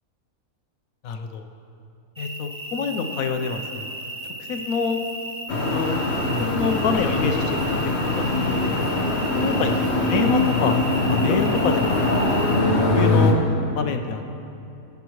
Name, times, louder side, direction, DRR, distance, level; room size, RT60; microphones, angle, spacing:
voice 1, 1.0-1.5 2.2-4.0 4.5-5.0 5.7-6.0 6.5-8.9 9.4-10.8 11.1-12.0 12.6-13.4 13.7-14.3, left 5 dB, 75° left, 6 dB, 1.2 m, -27 dB
sound 1, 2.2-12.6, right 1 dB, 10° right, 1.3 m, -35 dB
sound 2, 5.5-13.3, left 2 dB, 50° left, 1.3 m, -22 dB
21.5 x 8.1 x 3.1 m, 2.8 s
omnidirectional pair, 1.5 m